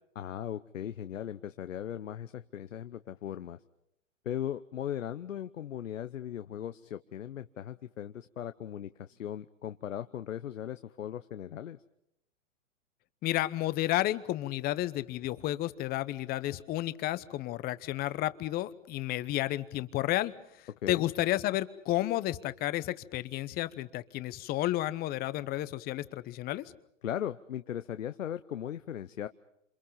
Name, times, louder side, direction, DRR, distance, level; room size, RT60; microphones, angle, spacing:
voice 1, 0.1-3.6 4.2-11.8 20.8-21.1 27.0-29.3, left 10 dB, 75° left, 11 dB, 1.0 m, -38 dB
voice 2, 13.2-20.3 20.9-26.6, left 15 dB, 25° left, 15 dB, 1.0 m, -31 dB
28.0 x 27.0 x 5.6 m, 0.81 s
hypercardioid pair, 125°, 38 cm